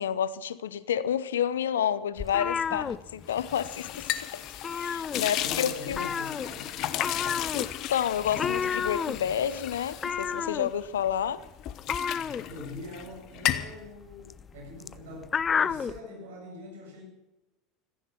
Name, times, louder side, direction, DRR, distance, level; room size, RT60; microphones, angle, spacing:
voice 1, 0.0-4.4 4.7-6.1 7.5-11.4, left 9 dB, 70° left, 0.7 m, -30 dB
sound 1, 2.2-3.7 3.9-4.2 4.5-5.6 5.9-16.0, left 6 dB, 25° left, 0.5 m, -31 dB
sound 2, 3.3-11.1 11.4-13.1 13.3-13.8, left 13 dB, 45° left, 1.0 m, -34 dB
voice 2, 5.4-6.9 12.2-17.0, left 1 dB, 65° right, 7.8 m, -43 dB
16.0 x 14.5 x 5.9 m
figure-of-eight pair, 70°, 0 cm